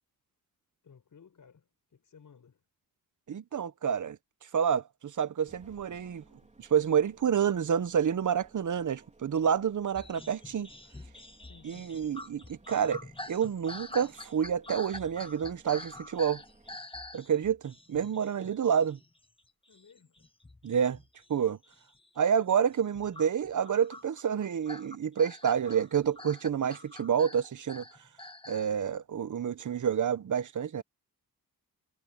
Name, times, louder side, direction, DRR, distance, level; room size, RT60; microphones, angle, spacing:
voice 1, 0.8-2.6 11.4-12.0 19.7-20.3, left 6 dB, 60° left, 7.0 m, -58 dB
voice 2, 3.3-4.2 4.5-6.2 6.6-10.7 11.6-16.4 17.1-19.0 20.6-21.0 21.3-21.6 22.2-27.8 28.5-30.8, right 8 dB, 55° right, 1.0 m, -29 dB
sound 1, 5.5-16.8, right 2 dB, 20° right, 3.9 m, -61 dB
sound 2, 9.9-19.4 19.7-21.4 21.6-22.1 22.7-28.7, left 2 dB, 15° left, 1.4 m, -46 dB
cardioid pair, 95°, 36 cm